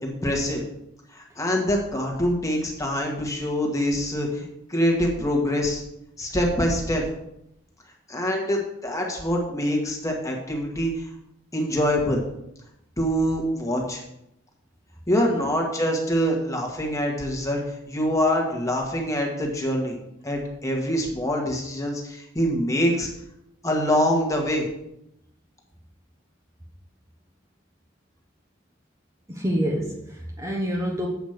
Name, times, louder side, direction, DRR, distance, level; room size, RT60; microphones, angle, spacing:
voice 1, 0.0-0.6 1.1-5.8 6.2-7.0 8.1-11.1 11.5-12.2 13.0-14.0 15.1-17.6 17.9-20.0 20.2-23.1 23.6-24.7, equal, 15° left, 0 dB, 1.6 m, -25 dB
voice 2, 29.3-31.1, equal, 15° right, -2 dB, 1.0 m, -27 dB
8.3 x 5.1 x 6.6 m, 0.81 s
head